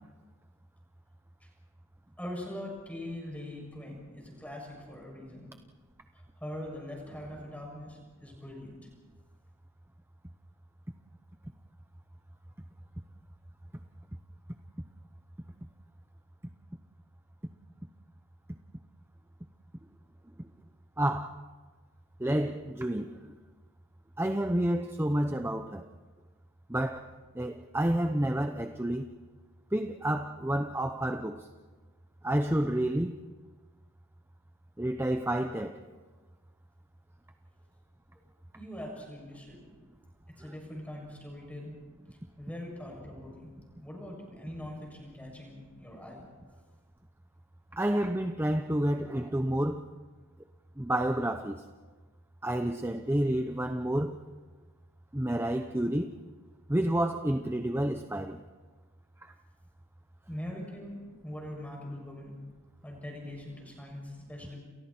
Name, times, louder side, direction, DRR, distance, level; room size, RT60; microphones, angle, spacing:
voice 1, 2.2-5.5 6.1-8.8 38.5-39.6 40.4-41.8 42.4-43.5 43.8-46.3 60.3-62.4 62.8-64.6, left 1 dB, 5° left, 7.1 m, -42 dB
voice 2, 21.0-21.3 22.2-23.1 24.2-25.9 26.7-27.0 27.4-29.1 29.7-31.4 32.2-33.2 34.8-35.8 47.8-49.8 50.8-51.6 52.4-54.2 55.1-56.1 56.7-58.4, right 1 dB, 10° right, 0.7 m, -29 dB
29.5 x 29.0 x 4.4 m
head